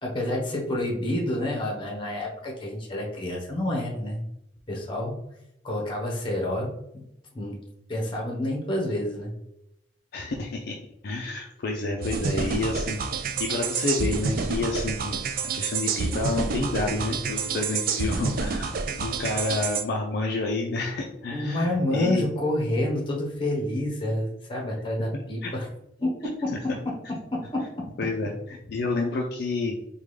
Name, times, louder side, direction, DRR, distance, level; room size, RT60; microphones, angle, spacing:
voice 1, 0.0-4.2 4.7-5.2 5.6-7.0 7.3-7.6 7.9-9.3 21.3-25.7 26.0-26.5 27.3-27.8, left 1 dB, 25° left, -2 dB, 0.9 m, -28 dB
voice 2, 10.1-10.8 11.0-15.2 15.5-22.3 25.1-25.5 28.0-29.8, left 3 dB, 55° left, 0 dB, 0.4 m, -29 dB
sound 1, 12.0-19.8, right 5 dB, 45° right, 0.3 m, -28 dB
3.5 x 2.3 x 3.1 m, 0.83 s
head